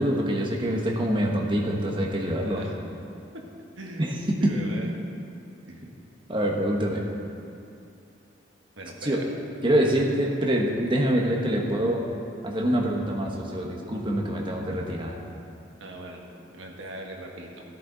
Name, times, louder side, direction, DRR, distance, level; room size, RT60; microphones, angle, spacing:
voice 1, 0.0-2.6 4.0-4.6 6.3-7.0 9.0-9.2 9.6-12.0 12.4-15.2, right 1 dB, 25° right, -1 dB, 1.3 m, -25 dB
voice 2, 2.4-2.8 3.3-3.4 3.8-4.1 4.4-4.9 5.7-5.8 8.8-9.3 15.8-16.2 16.5-17.6, right 1 dB, 80° right, 0 dB, 1.5 m, -40 dB
13.5 x 10.0 x 4.0 m, 2.5 s
head